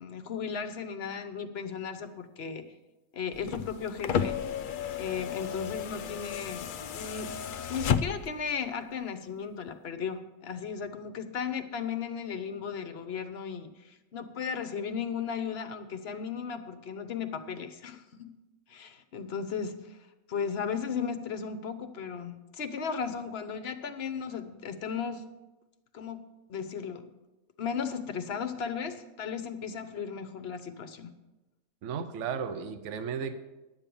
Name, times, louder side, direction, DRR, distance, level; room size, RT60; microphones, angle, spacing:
voice 1, 0.0-2.7 3.1-4.4 5.0-7.3 7.7-18.3 18.7-20.0 20.3-25.2 25.9-26.2 26.5-27.1 27.6-31.1, left 6 dB, 50° left, 10 dB, 0.9 m, -35 dB
sound 1, 3.3-8.5 9.7-9.8, left 7 dB, 75° left, 0.4 m, -33 dB
voice 2, 31.8-33.3, right 6 dB, 60° right, 10 dB, 1.0 m, -34 dB
11.0 x 7.5 x 6.9 m, 1.1 s
omnidirectional pair, 1.5 m